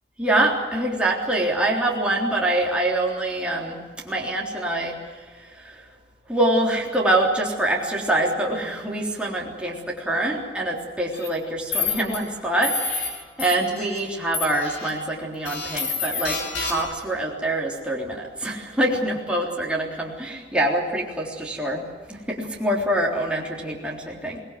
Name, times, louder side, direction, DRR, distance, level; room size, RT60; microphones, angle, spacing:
voice 1, 0.2-5.9 6.3-24.4, right 1 dB, 5° right, -3 dB, 3.6 m, -25 dB
sound 1, 11.1-11.3 11.7-12.2 12.6-13.1 13.4-14.0 14.3-14.9 15.5-17.0, left 4 dB, 75° left, 5.8 m, -28 dB
24.5 x 20.0 x 7.7 m, 1.5 s
head